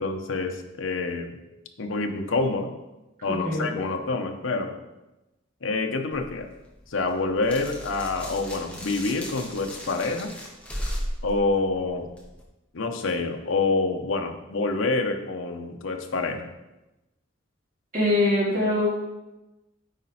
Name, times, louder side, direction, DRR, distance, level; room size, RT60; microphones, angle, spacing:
voice 1, 0.0-1.4 1.8-2.7 3.2-4.7 5.6-6.5 6.9-10.3 11.2-12.1 12.7-16.5, left 3 dB, 75° left, 4 dB, 0.8 m, -27 dB
voice 2, 3.3-3.7 17.9-18.9, left 1 dB, 40° right, -7 dB, 2.3 m, -23 dB
sound 1, 6.1-12.4, equal, 5° left, 1.0 m, -37 dB
9.0 x 4.3 x 4.1 m, 1.0 s
head